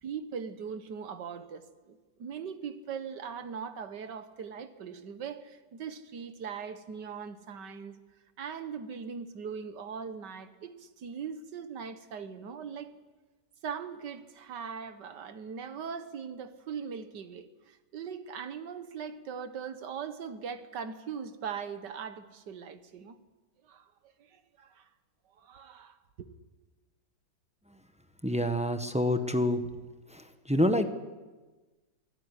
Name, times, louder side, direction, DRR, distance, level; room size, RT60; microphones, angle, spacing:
voice 1, 0.0-8.0 8.4-12.9 13.6-23.2 23.6-24.9 25.3-26.3, right 6 dB, 75° right, 2.0 m, -40 dB
voice 2, 28.2-29.6 30.1-30.9, left 1 dB, 5° right, 1.1 m, -27 dB
24.0 x 16.0 x 10.0 m
omnidirectional pair, 1.9 m